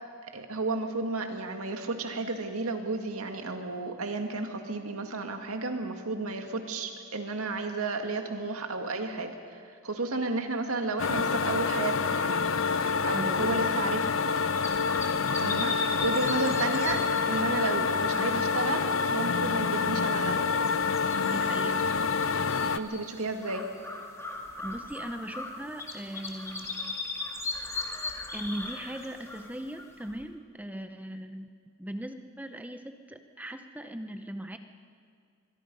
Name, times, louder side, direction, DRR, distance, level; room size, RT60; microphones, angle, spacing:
voice 1, 0.2-9.4 9.6-12.5 12.7-14.3 15.4-15.7 16.0-20.4 22.8-23.7, right 3 dB, 80° right, 5 dB, 2.0 m, -32 dB
sound 1, 11.0-22.8, left 5 dB, 60° left, 0.7 m, -27 dB
voice 2, 13.1-13.5 15.4-15.8 21.2-22.0 24.6-26.9 28.3-31.5 31.8-34.6, right 1 dB, 5° right, 7 dB, 0.7 m, -39 dB
sound 2, 14.2-30.2, left 2 dB, 15° left, 1.9 m, -39 dB
24.5 x 23.0 x 5.5 m, 2.2 s
head